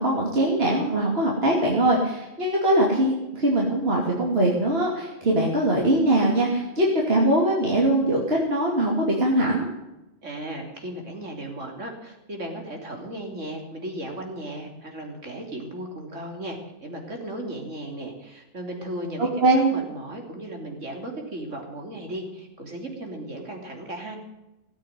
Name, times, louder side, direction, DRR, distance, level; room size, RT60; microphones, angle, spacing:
voice 1, 0.0-9.7 19.2-19.7, right 1 dB, 50° right, -2 dB, 3.0 m, -22 dB
voice 2, 10.2-24.2, right 1 dB, 75° right, 2 dB, 3.8 m, -36 dB
17.5 x 8.5 x 9.4 m, 0.96 s
omnidirectional pair, 1.3 m